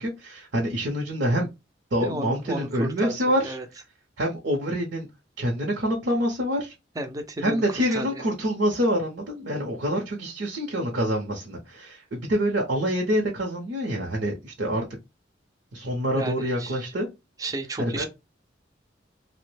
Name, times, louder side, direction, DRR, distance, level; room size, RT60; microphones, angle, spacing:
voice 1, 0.0-1.5 1.9-3.6 4.2-5.1 5.4-6.7 7.4-14.8 15.7-17.1 17.8-18.0, equal, 70° right, 0.7 m, -26 dB
voice 2, 2.0-3.1 3.4-3.7 7.0-8.2 16.1-16.9 17.4-18.0, right 1 dB, 20° right, 0.4 m, -33 dB
2.9 x 2.1 x 3.2 m
head